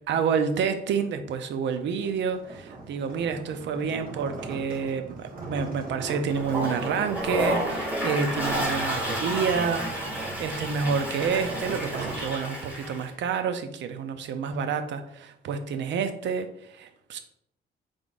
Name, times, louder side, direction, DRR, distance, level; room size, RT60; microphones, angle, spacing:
voice 1, 0.1-9.9 10.4-17.2, right 6 dB, 65° right, 8 dB, 0.5 m, -29 dB
sound 1, 1.9-12.9, right 3 dB, 50° right, 1.1 m, -40 dB
Toilet flush, 6.3-13.1, right 1 dB, 10° right, 1.4 m, -31 dB
3.7 x 3.6 x 2.4 m, 0.76 s
cardioid pair, 90°, 20 cm